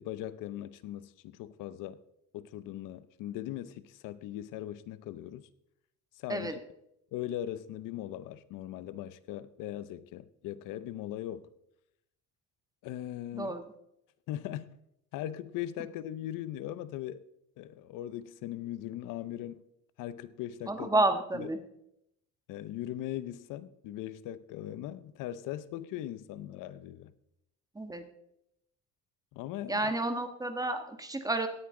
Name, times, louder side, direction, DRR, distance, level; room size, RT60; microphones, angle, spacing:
voice 1, 0.0-2.0 2.3-5.5 6.2-6.6 7.1-11.5 12.8-13.6 14.3-14.8 15.1-17.3 17.6-19.6 20.0-20.9 21.3-21.5 22.5-27.1 29.3-29.8, left 12 dB, 85° left, 0.7 m, -39 dB
voice 2, 13.3-13.6 20.7-21.6 27.7-28.0 29.7-31.5, right 2 dB, 10° right, 1.4 m, -30 dB
17.0 x 9.6 x 3.8 m
cardioid pair, 125°, 31 cm